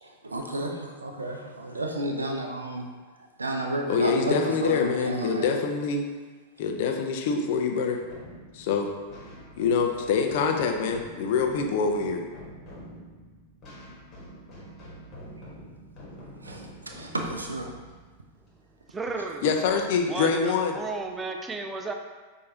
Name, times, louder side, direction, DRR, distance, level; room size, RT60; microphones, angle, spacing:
voice 1, 0.0-2.8 3.4-5.6 16.4-17.7, right 1 dB, 80° right, 2 dB, 0.5 m, -32 dB
voice 2, 3.9-6.1 6.6-8.0 8.5-8.9 9.6-12.2 19.4-20.7, left 5 dB, 50° left, 3 dB, 0.5 m, -25 dB
sound 1, 8.0-19.4, equal, 30° left, 1.5 m, -46 dB
voice 3, 18.9-19.5 20.1-21.9, right 3 dB, 15° right, 4 dB, 0.4 m, -33 dB
6.4 x 2.7 x 2.8 m, 1.3 s
figure-of-eight pair, 95°, 0 cm